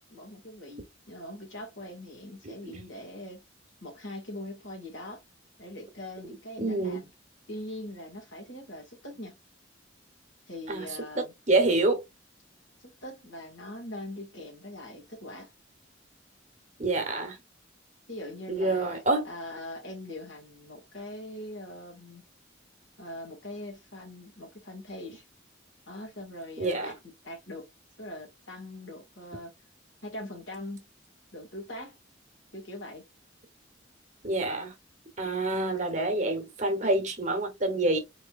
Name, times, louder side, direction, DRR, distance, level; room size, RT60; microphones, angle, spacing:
voice 1, 0.1-3.4 3.8-5.2 5.6-7.1 7.5-9.4 10.5-11.3 12.8-15.5 18.1-22.2 23.0-25.2 25.9-27.0 27.2-27.6 28.0-29.5 30.0-30.9 31.3-31.9 32.5-33.0, left 1 dB, 80° left, 1.8 m, -42 dB
voice 2, 6.6-7.0 10.7-12.0 16.8-17.4 18.5-19.3 26.6-26.9 34.2-34.7 35.2-38.0, right 2 dB, 40° right, 1.0 m, -27 dB
3.9 x 3.0 x 2.4 m
head